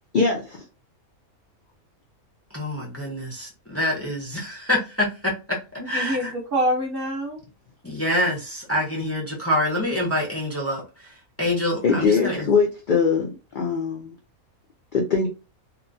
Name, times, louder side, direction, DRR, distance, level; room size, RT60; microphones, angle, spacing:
voice 1, 0.1-0.6 11.8-14.1 14.9-15.3, left 5 dB, 85° left, 0.4 m, -22 dB
voice 2, 2.5-6.3 7.8-10.8 11.4-12.5, left 1 dB, 20° left, 0.4 m, -26 dB
voice 3, 5.8-7.4, equal, 55° right, 0.6 m, -26 dB
2.9 x 2.2 x 2.5 m
omnidirectional pair, 1.5 m